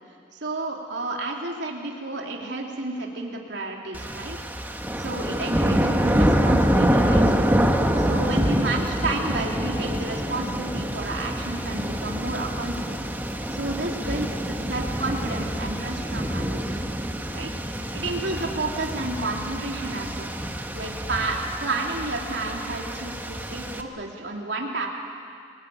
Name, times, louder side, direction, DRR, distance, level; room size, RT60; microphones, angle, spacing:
voice 1, 0.3-4.4 5.0-7.5 8.0-13.0 13.5-16.8 17.3-17.5 17.9-20.3 20.7-24.9, right 2 dB, 75° right, 0 dB, 3.1 m, -31 dB
sound 1, 3.9-23.8, equal, 10° right, 1.6 m, -26 dB
28.5 x 20.0 x 9.3 m, 2.2 s
head